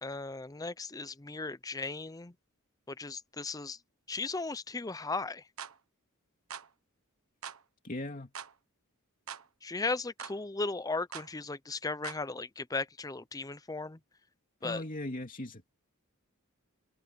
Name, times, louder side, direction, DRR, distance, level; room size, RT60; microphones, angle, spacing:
voice 1, 0.0-2.3 3.0-3.8 4.1-5.4 9.6-14.0 14.6-14.8, left 3 dB, 15° left, 0.6 m, -36 dB
sound 1, 5.6-5.8 6.5-6.7 7.4-7.6 8.3-8.5 9.3-9.5 10.2-10.4 11.1-11.3 12.0-12.2, right 8 dB, 80° right, 1.4 m, -43 dB
voice 2, 7.8-8.3 14.6-15.7, left 1 dB, 40° left, 2.7 m, -38 dB
open air
head